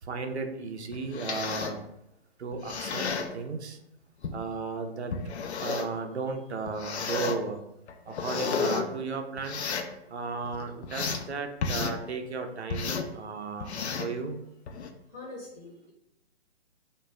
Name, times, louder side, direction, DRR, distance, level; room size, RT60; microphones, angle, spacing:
voice 1, 0.0-1.8 2.4-3.8 4.3-5.1 5.6-7.6 8.1-9.6 10.1-14.4, right 4 dB, 90° right, 5 dB, 0.5 m, -35 dB
sound 1, 0.9-1.8 2.5-3.3 4.2-4.4 5.1-6.0 6.7-7.4 7.9-8.8 9.4-9.9 10.4-11.2 11.6-12.0 12.7-13.1 13.6-14.1 14.7-14.9, left 5 dB, 80° left, 0.5 m, -32 dB
voice 2, 15.1-15.9, left 2 dB, 20° left, -5 dB, 0.6 m, -43 dB
2.2 x 2.1 x 3.4 m, 0.82 s
hypercardioid pair, 145°, 32 cm